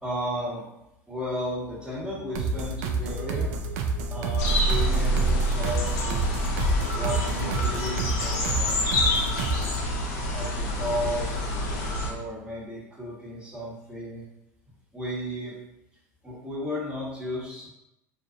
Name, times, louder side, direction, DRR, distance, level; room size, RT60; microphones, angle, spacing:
voice 1, 0.0-0.6 1.1-3.5 4.1-6.4 6.9-8.7 10.3-11.3 12.1-14.2 14.9-15.5 16.2-17.7, equal, 10° right, -7 dB, 1.2 m, -34 dB
sound 1, 2.3-9.9, right 3 dB, 65° right, 0.4 m, -29 dB
sound 2, 4.4-12.1, equal, 70° left, 0.6 m, -26 dB
2.4 x 2.4 x 2.4 m, 0.86 s
hypercardioid pair, 85°, 9 cm